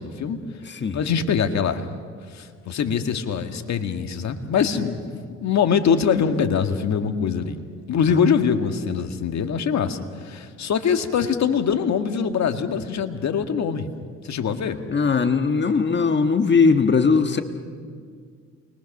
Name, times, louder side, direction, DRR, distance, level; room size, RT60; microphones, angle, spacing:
voice 1, 0.0-0.4 0.9-1.9 2.3-5.0 5.4-7.6 7.9-13.9 14.2-14.8, left 7 dB, 65° left, 7 dB, 1.8 m, -23 dB
voice 2, 0.6-1.0 4.8-5.2 8.1-8.2 14.9-17.4, left 5 dB, 35° left, 7 dB, 1.5 m, -20 dB
29.0 x 22.5 x 6.6 m, 2.1 s
cardioid pair, 90°, 30 cm